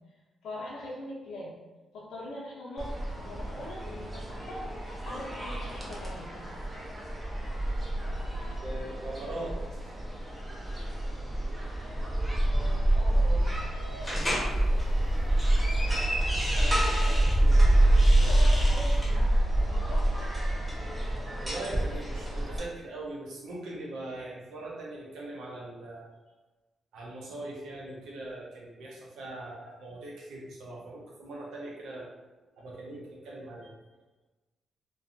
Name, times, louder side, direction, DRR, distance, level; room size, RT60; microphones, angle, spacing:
voice 1, 0.4-1.5 1.9-2.9 3.2-4.6 5.0-6.3 12.8-13.5 18.1-19.3 19.6-20.0, left 1 dB, 75° left, -6 dB, 0.5 m, -41 dB
sound 1, 2.8-22.6, right 1 dB, 25° right, 0.7 m, -27 dB
voice 2, 8.6-9.5 15.8-18.4 21.4-26.1 26.9-32.1 32.6-33.7, right 2 dB, 85° right, -4 dB, 0.7 m, -41 dB
sound 2, 14.0-14.5 15.1-17.4 17.8-19.1, equal, 15° left, 0.9 m, -34 dB
2.5 x 2.3 x 2.5 m, 1.2 s
supercardioid pair, 65°, 0 cm